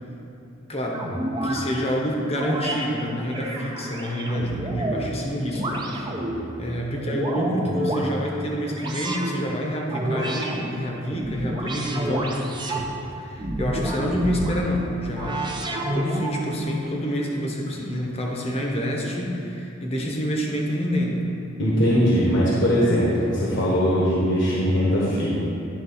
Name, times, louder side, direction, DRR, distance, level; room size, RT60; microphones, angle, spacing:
voice 1, 0.7-1.1 1.4-6.2 6.6-12.4 13.2-15.4 15.9-21.2, equal, 30° left, -1 dB, 1.0 m, -28 dB
sound 1, 0.9-1.6 2.3-2.8 3.3-5.1 5.5-6.4 6.9-8.1 8.7-9.3 9.9-10.6 11.0-12.9 13.4-14.6 15.2-16.4, right 1 dB, 20° right, 0.7 m, -29 dB
voice 2, 21.6-25.3, equal, 60° left, -6 dB, 1.2 m, -20 dB
10.5 x 3.7 x 5.5 m, 2.9 s
head